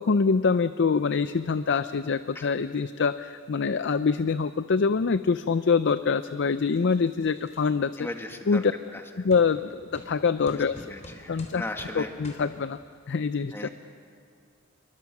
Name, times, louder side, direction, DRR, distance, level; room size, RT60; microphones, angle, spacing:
voice 1, 0.0-8.1 8.5-8.7 9.2-11.0 11.3-11.6 11.9-12.8 13.1-13.7, left 5 dB, 60° left, 12 dB, 0.5 m, -25 dB
sound 1, 6.7-7.6 8.3-8.4 9.3-9.5 9.9-10.1 10.5-12.0 12.2-12.4, left 1 dB, 35° left, 3.8 m, -46 dB
voice 2, 8.0-8.6 10.5-10.6 10.9-12.1 13.5-13.7, left 1 dB, 10° left, 4 dB, 1.7 m, -36 dB
28.0 x 23.5 x 6.1 m, 2.3 s
head